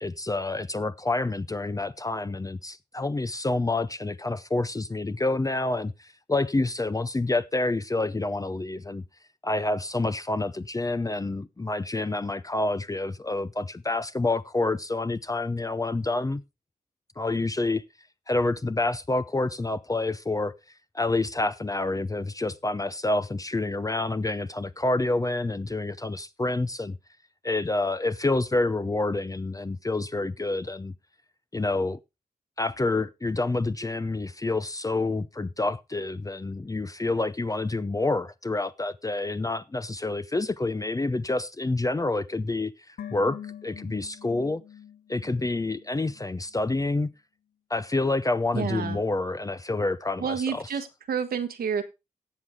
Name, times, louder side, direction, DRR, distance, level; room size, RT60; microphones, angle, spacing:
voice 1, 0.0-9.0 9.4-16.4 17.2-17.9 18.3-20.5 20.9-27.0 27.4-30.9 31.5-32.0 32.6-44.6 45.1-47.1 47.7-50.7, left 2 dB, 25° left, 0.6 m, -28 dB
sound 1, 43.0-46.3 46.5-46.6, left 9 dB, 80° left, 0.6 m, -44 dB
voice 2, 48.5-49.0 50.2-51.8, right 7 dB, 80° right, 1.3 m, -29 dB
17.0 x 6.3 x 3.6 m
cardioid pair, 50°, 15 cm